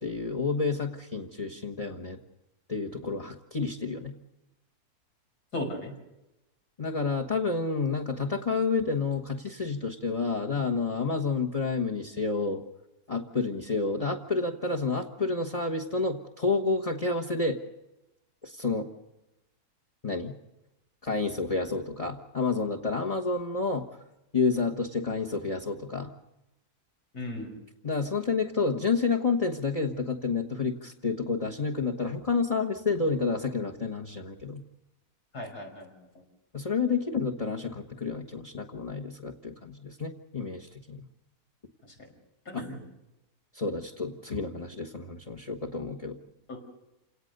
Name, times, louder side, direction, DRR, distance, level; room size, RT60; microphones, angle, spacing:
voice 1, 0.0-2.2 2.7-4.2 6.8-12.6 13.1-17.6 18.4-18.9 20.0-20.4 21.0-23.9 24.3-26.1 27.8-34.6 36.5-41.1 42.5-42.6 43.5-46.2, left 4 dB, 25° left, 1 dB, 1.4 m, -29 dB
voice 2, 5.5-5.9 27.1-27.5 35.3-35.9 41.8-41.9 42.5-42.8 46.5-46.6, left 1 dB, 80° left, 2 dB, 6.2 m, -36 dB
28.0 x 18.5 x 6.7 m, 0.94 s
omnidirectional pair, 1.7 m